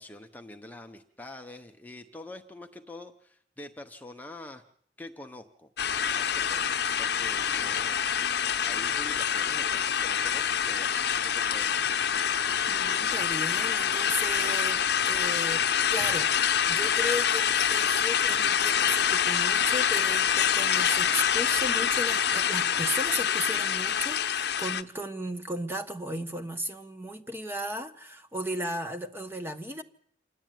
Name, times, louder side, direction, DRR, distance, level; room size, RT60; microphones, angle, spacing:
voice 1, 0.0-4.6 5.0-5.7 6.1-6.7 7.0-8.3 8.6-11.9, left 1 dB, 10° left, 5 dB, 0.9 m, -45 dB
sound 1, 5.8-24.8, left 8 dB, 60° left, 0.8 m, -26 dB
voice 2, 12.7-29.8, equal, 15° right, 7 dB, 1.1 m, -35 dB
26.5 x 11.5 x 9.3 m, 0.67 s
head